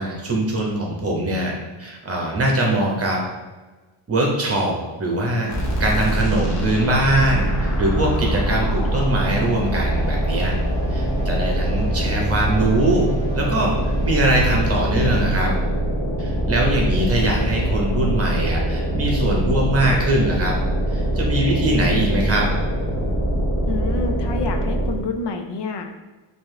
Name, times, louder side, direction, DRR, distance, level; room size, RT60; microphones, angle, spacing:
voice 1, 0.0-1.5 1.8-3.2 4.1-5.5 5.8-10.5 10.9-15.5 16.2-20.6 20.9-22.5, right 1 dB, 30° right, -1 dB, 1.0 m, -22 dB
sound 1, 5.5-25.1, right 1 dB, 35° left, 0.9 m, -23 dB
sound 2, 6.9-14.4, right 4 dB, 15° left, 1.4 m, -38 dB
voice 2, 23.7-26.0, left 4 dB, 55° left, 5 dB, 0.6 m, -28 dB
4.4 x 2.7 x 3.2 m, 1.2 s
cardioid pair, 115°, 50 cm